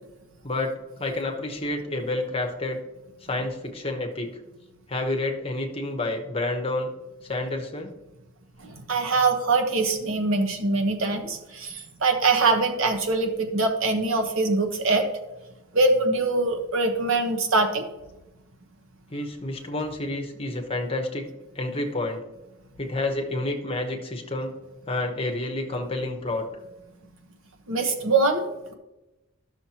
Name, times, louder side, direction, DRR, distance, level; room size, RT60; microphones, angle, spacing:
voice 1, 0.4-2.8 3.3-4.3 4.9-6.9 7.3-8.0 19.1-21.3 21.5-22.2 22.8-24.6 24.9-26.5, left 2 dB, 25° left, 3 dB, 1.0 m, -29 dB
voice 2, 8.6-15.0 15.7-17.8 27.7-28.7, right 3 dB, 75° right, 4 dB, 1.1 m, -23 dB
12.5 x 6.4 x 2.9 m, 1.0 s
head